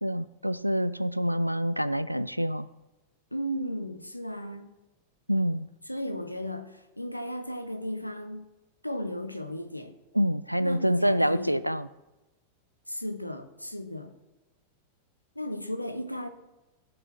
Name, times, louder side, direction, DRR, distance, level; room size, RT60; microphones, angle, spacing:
voice 1, 0.0-2.7 5.3-5.7 10.1-11.9, equal, 90° right, 17 dB, 0.3 m, -26 dB
voice 2, 3.3-4.7 5.9-8.4 8.8-10.0 10.6-11.6 12.9-14.1 15.3-16.3, equal, 90° left, 8 dB, 0.8 m, -35 dB
15.5 x 6.7 x 3.2 m, 1.0 s
figure-of-eight pair, 90°, 0 cm